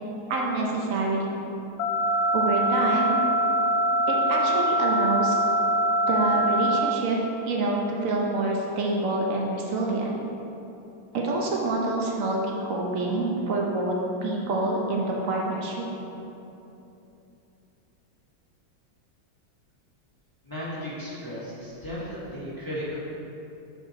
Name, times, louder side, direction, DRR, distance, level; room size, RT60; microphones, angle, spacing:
voice 1, 0.3-1.5 2.3-3.2 4.1-5.4 6.1-7.2 7.4-10.2 11.1-14.0 14.2-15.9, right 2 dB, 80° right, -2 dB, 0.7 m, -27 dB
sound 1, 1.8-6.8, right 1 dB, 80° left, 1.4 m, -23 dB
voice 2, 20.4-23.0, equal, 20° left, -9 dB, 0.6 m, -35 dB
6.3 x 4.5 x 3.8 m, 2.9 s
omnidirectional pair, 2.3 m